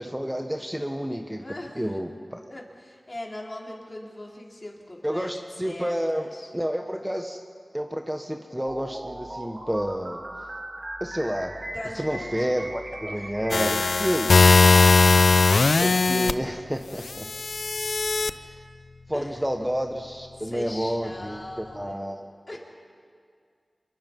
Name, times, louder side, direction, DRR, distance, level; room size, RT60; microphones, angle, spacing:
voice 1, 0.0-1.4 1.7-2.4 5.0-7.4 7.7-10.2 11.0-11.5 11.9-14.3 15.8-17.3 18.2-18.4 19.1-22.2, equal, 10° right, 4 dB, 1.3 m, -30 dB
voice 2, 1.4-1.9 2.5-6.5 11.7-12.5 13.2-13.3 14.3-15.0 19.1-19.4 20.4-22.0 22.5-22.6, left 1 dB, 40° left, -2 dB, 4.0 m, -40 dB
sound 1, 8.7-14.2, right 1 dB, 45° right, 2.1 m, -38 dB
sound 2, 13.5-16.3 17.2-18.3, left 3 dB, 85° left, 0.6 m, -18 dB
26.0 x 22.5 x 5.5 m, 2.1 s
wide cardioid pair, 50°, 0 cm